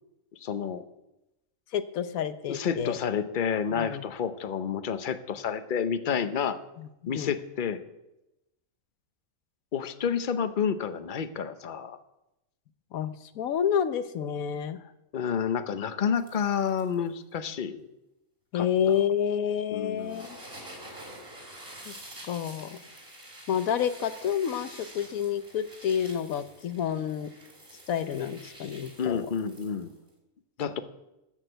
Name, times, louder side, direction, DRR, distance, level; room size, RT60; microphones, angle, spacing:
voice 1, 0.4-0.8 2.5-6.6 7.1-7.8 9.7-12.0 15.1-17.9 18.5-18.7 19.7-20.2 29.0-29.9 30.6-30.8, left 7 dB, 45° left, 11 dB, 0.8 m, -29 dB
voice 2, 1.7-3.0 3.8-4.0 6.8-7.3 12.9-14.8 18.5-20.4 21.9-22.0 22.2-22.8 23.5-27.3 27.9-29.3, left 8 dB, 90° left, 12 dB, 1.2 m, -29 dB
sound 1, 16.1-17.1 18.8-19.0 20.0-30.1, right 1 dB, 40° right, 3.7 m, -48 dB
13.0 x 6.5 x 7.9 m, 0.93 s
omnidirectional pair, 1.4 m